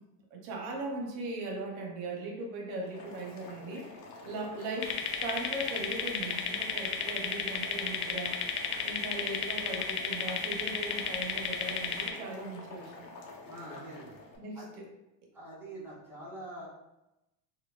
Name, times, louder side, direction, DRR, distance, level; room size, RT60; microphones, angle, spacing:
voice 1, 0.3-4.0 4.2-8.4 8.8-13.1 14.4-14.8, right 2 dB, 60° right, 1 dB, 0.8 m, -39 dB
Boiling, 2.8-14.4, left 3 dB, 75° left, 0.9 m, -48 dB
sound 1, 4.8-12.1, left 7 dB, 55° left, 0.5 m, -33 dB
voice 2, 13.4-14.2 14.5-14.7 15.3-16.7, right 1 dB, 5° right, -8 dB, 0.5 m, -44 dB
4.3 x 2.1 x 2.4 m, 0.94 s
cardioid pair, 155°, 49 cm